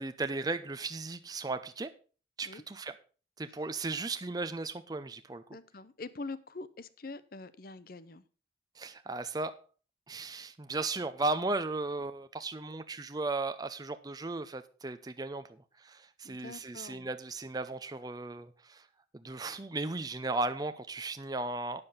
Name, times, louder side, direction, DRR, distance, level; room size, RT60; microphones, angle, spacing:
voice 1, 0.0-1.9 2.4-2.9 3.4-5.4 8.8-9.6 10.1-15.5 15.8-18.9 19.1-21.8, right 3 dB, 20° right, 0.5 m, -36 dB
voice 2, 5.5-8.2 16.2-17.1, left 3 dB, 55° left, 0.7 m, -44 dB
9.6 x 7.0 x 5.5 m
head